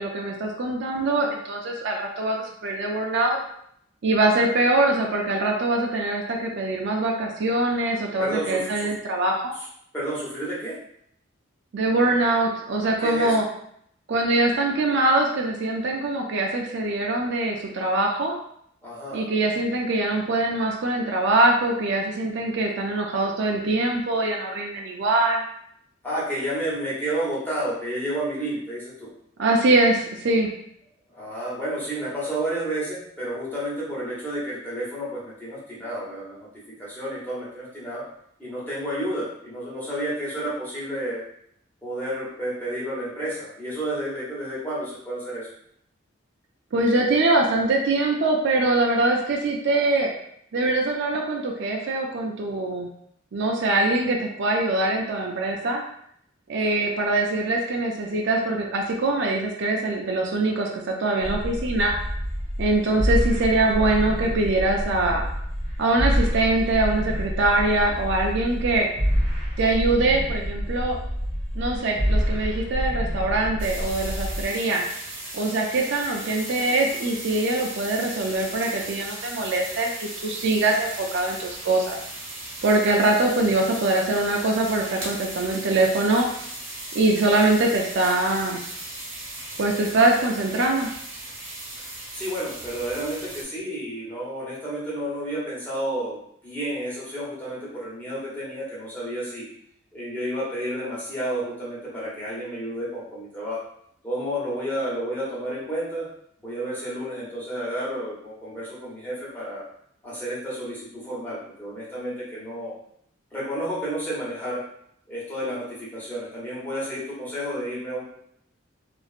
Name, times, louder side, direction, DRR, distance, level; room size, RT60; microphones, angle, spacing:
voice 1, 0.0-3.4 4.0-9.5 11.7-13.4 14.1-18.4 19.1-25.4 29.4-30.5 46.7-50.1 50.5-52.9 53.3-55.8 56.5-61.9 62.6-65.2 65.8-68.9 69.6-71.0 71.5-74.8 75.3-82.0 82.6-86.3 86.9-88.6 89.6-90.9, right 2 dB, 65° right, 1 dB, 0.5 m, -23 dB
voice 2, 8.2-8.9 9.9-10.8 13.0-13.4 18.8-19.3 26.0-29.1 31.1-38.0 38.4-41.2 41.8-45.5 91.8-91.9 92.1-99.5 99.9-103.6 104.0-106.1 106.4-109.6 110.0-112.7 113.3-114.6 115.1-118.0, right 1 dB, 10° left, -8 dB, 1.2 m, -31 dB
sound 1, 61.2-74.4, equal, 35° left, 1.1 m, -27 dB
sound 2, 73.6-93.4, right 2 dB, 80° right, 1.0 m, -37 dB
3.0 x 2.5 x 2.4 m, 0.70 s
head